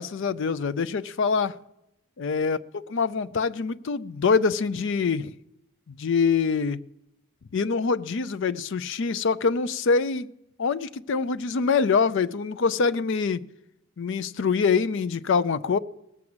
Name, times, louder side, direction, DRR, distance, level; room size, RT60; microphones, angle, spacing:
voice 1, 0.0-1.6 2.2-5.3 5.9-6.8 7.5-10.3 10.6-13.5 14.0-15.8, left 5 dB, 55° left, 0.4 m, -25 dB
18.0 x 7.3 x 7.8 m
head